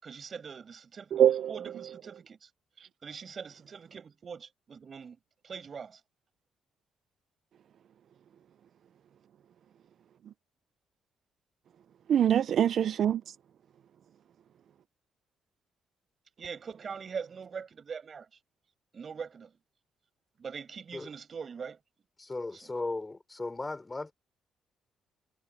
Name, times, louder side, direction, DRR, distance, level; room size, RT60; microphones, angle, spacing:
voice 1, 0.0-2.5 3.0-5.2 5.4-6.0 16.4-18.3 18.9-19.5 20.4-21.8 22.5-22.7, right 6 dB, 45° right, 7.2 m, -42 dB
voice 2, 1.1-1.5 12.1-13.2, right 10 dB, 65° right, 0.4 m, -23 dB
voice 3, 22.2-24.1, left 2 dB, 20° left, 3.7 m, -36 dB
cardioid pair, 90°, 0 cm